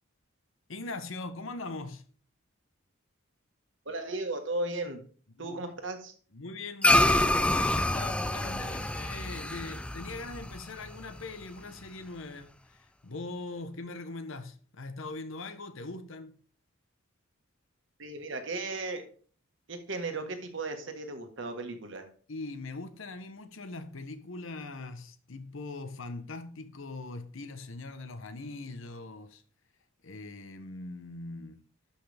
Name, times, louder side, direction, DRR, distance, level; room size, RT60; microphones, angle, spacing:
voice 1, 0.7-2.0 5.4-5.7 6.3-16.3 22.3-29.4 30.0-31.6, left 3 dB, 70° left, 1.0 m, -41 dB
voice 2, 3.8-5.0 5.4-6.1 18.0-19.0 19.7-22.0, right 2 dB, 60° right, 1.5 m, -35 dB
sound 1, 6.8-11.4, left 1 dB, 5° left, 0.3 m, -27 dB
12.0 x 5.6 x 3.4 m
head